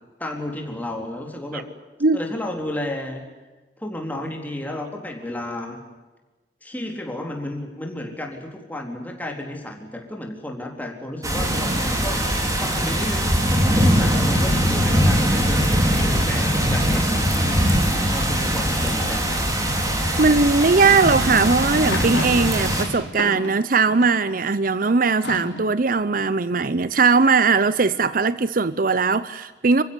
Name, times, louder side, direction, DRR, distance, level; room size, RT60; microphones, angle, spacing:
voice 1, 0.2-1.6 2.1-3.2 3.8-5.8 6.6-12.2 12.5-15.7 15.9-17.6 18.1-19.3, left 1 dB, 10° left, 4.0 m, -32 dB
sound 1, 11.2-22.8, equal, 20° right, 4.0 m, -21 dB
voice 2, 20.2-29.8, right 4 dB, 50° right, 0.7 m, -19 dB
sound 2, 21.0-24.3 25.1-25.8, left 1 dB, 80° left, 3.6 m, -32 dB
27.5 x 15.5 x 9.9 m
head